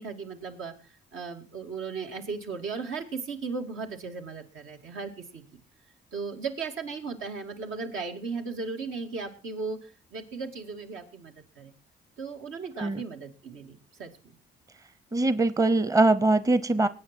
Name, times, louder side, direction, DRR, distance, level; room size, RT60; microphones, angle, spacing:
voice 1, 0.0-5.6 6.1-11.7 12.2-14.4, right 4 dB, 80° right, 3 dB, 2.5 m, -36 dB
voice 2, 15.1-16.9, right 2 dB, 15° right, 15 dB, 0.7 m, -22 dB
20.5 x 8.9 x 4.5 m, 0.34 s
cardioid pair, 90°, 20 cm